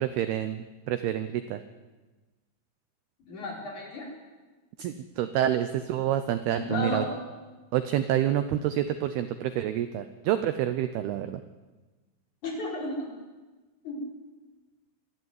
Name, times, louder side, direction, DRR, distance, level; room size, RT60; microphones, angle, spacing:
voice 1, 0.0-1.6 4.8-7.0 7.7-11.4, right 11 dB, 85° right, 10 dB, 2.2 m, -28 dB
voice 2, 3.3-4.1 6.6-7.1 12.4-13.1 13.8-14.0, left 1 dB, 40° left, -2 dB, 5.9 m, -33 dB
23.0 x 14.0 x 9.6 m, 1.2 s
omnidirectional pair, 5.6 m